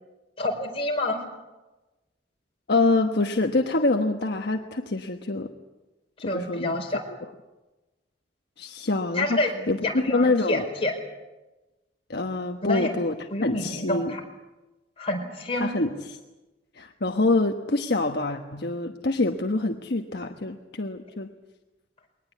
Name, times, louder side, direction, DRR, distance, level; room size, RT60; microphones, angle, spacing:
voice 1, 0.4-1.2 6.3-7.0 9.1-10.9 12.6-12.9 13.3-14.2 15.0-15.7, left 2 dB, 35° left, 1 dB, 4.8 m, -28 dB
voice 2, 2.7-5.5 6.2-7.2 8.6-10.7 12.1-13.1 13.4-14.2 15.5-16.2 16.7-21.3, left 2 dB, 65° left, 3 dB, 1.2 m, -26 dB
22.0 x 19.0 x 8.5 m, 1.1 s
head